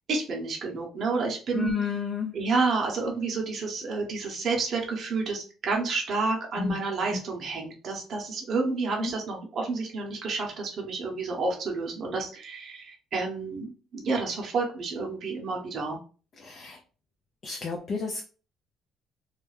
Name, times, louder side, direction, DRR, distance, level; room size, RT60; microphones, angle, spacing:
voice 1, 0.1-1.7 2.3-16.0, right 4 dB, 45° right, 0 dB, 0.7 m, -30 dB
voice 2, 1.5-2.3 6.6-6.8 9.0-9.1 16.4-16.8 17.4-18.2, left 5 dB, 40° left, 1 dB, 0.4 m, -31 dB
2.3 x 2.1 x 3.1 m, 0.37 s
cardioid pair, 125°, 0 cm